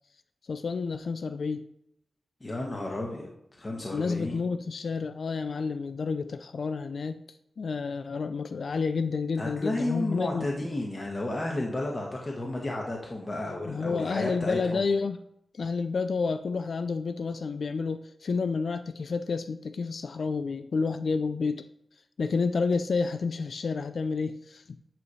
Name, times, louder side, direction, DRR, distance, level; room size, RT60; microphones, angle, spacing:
voice 1, 0.5-1.7 3.9-7.2 7.6-10.5 13.7-15.2 15.5-21.7 22.2-24.8, left 4 dB, 65° left, 10 dB, 0.3 m, -30 dB
voice 2, 2.4-3.3 3.6-4.4 9.4-14.8, left 1 dB, 30° left, -1 dB, 1.2 m, -32 dB
9.2 x 3.2 x 5.5 m, 0.77 s
wide cardioid pair, 100°, 0 cm